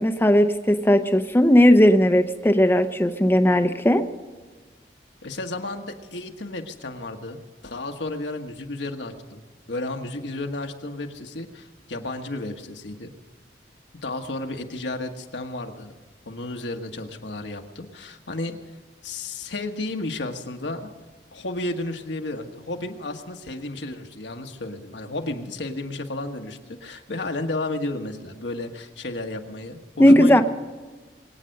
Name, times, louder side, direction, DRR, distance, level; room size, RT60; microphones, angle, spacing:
voice 1, 0.0-4.0 30.0-30.4, equal, 15° left, 6 dB, 0.7 m, -17 dB
voice 2, 5.2-7.4 7.6-9.4 9.7-13.1 14.0-15.9 16.2-18.6 19.0-20.9 21.3-30.4, left 2 dB, 80° left, 4 dB, 1.4 m, -32 dB
23.5 x 9.1 x 6.5 m, 1.4 s
head